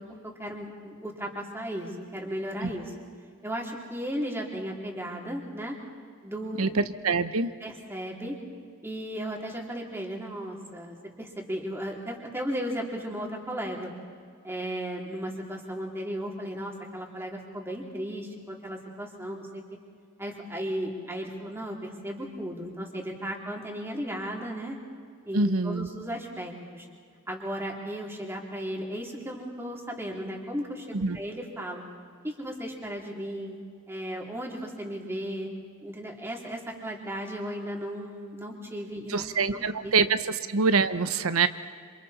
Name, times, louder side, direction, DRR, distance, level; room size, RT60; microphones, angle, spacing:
voice 1, 0.0-2.9 3.4-5.8 6.2-6.7 7.6-8.4 8.8-13.9 14.4-19.8 20.2-24.8 25.2-26.9 27.3-31.8 32.2-33.5 33.9-35.5 35.8-39.9, equal, 10° right, 0 dB, 3.2 m, -35 dB
voice 2, 6.6-7.5 25.3-25.9 30.9-31.2 39.1-41.5, right 4 dB, 80° right, 12 dB, 0.9 m, -25 dB
27.0 x 27.0 x 4.3 m, 2.2 s
head